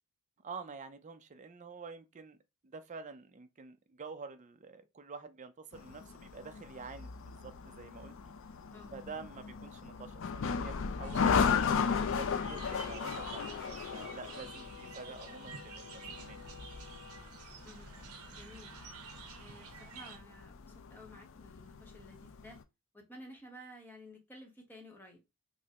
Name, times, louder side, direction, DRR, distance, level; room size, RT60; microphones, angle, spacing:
voice 1, 0.4-2.4 2.6-8.3 8.9-16.4, right 4 dB, 35° right, 0.4 m, -48 dB
sound 1, 5.7-22.6, left 6 dB, 60° left, 0.4 m, -36 dB
sound 2, 11.0-20.2, right 5 dB, 75° right, 0.8 m, -50 dB
voice 2, 18.4-18.7 19.4-22.6 22.9-25.2, equal, 10° left, 0.9 m, -53 dB
5.3 x 2.0 x 2.8 m
head